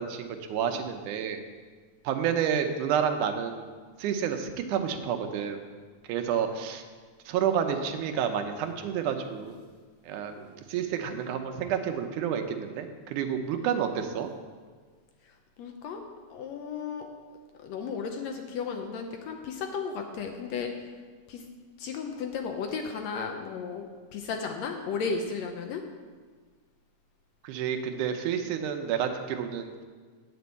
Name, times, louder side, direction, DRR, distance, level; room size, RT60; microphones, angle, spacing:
voice 1, 0.0-1.4 2.0-3.6 4.0-5.6 6.1-6.8 7.3-9.6 10.1-14.3 27.4-29.7, right 8 dB, 85° right, 6 dB, 2.3 m, -30 dB
voice 2, 15.2-16.0 16.3-17.1 17.6-20.7 21.3-21.4 21.8-23.8 24.1-25.8, left 5 dB, 70° left, 4 dB, 1.8 m, -34 dB
9.6 x 5.3 x 8.0 m, 1.5 s
omnidirectional pair, 3.5 m